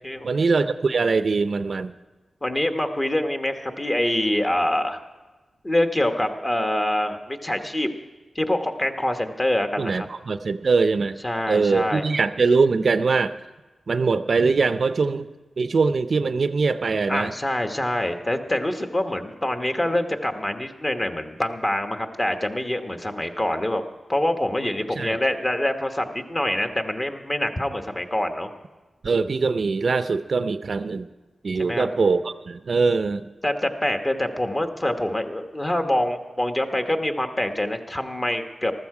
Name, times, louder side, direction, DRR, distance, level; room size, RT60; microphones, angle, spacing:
voice 1, 0.2-1.9 9.8-11.2 11.5-13.4 13.9-15.3 15.6-17.3 24.9-25.2 29.0-31.1 31.4-33.3, right 4 dB, 60° right, 11 dB, 0.5 m, -22 dB
voice 2, 2.4-5.0 5.6-7.9 8.3-10.1 11.2-12.0 17.1-23.8 24.1-28.5 31.6-31.9 33.4-38.7, left 1 dB, 25° left, 6 dB, 1.1 m, -25 dB
14.5 x 13.5 x 4.8 m, 1.2 s
wide cardioid pair, 85°, 0 cm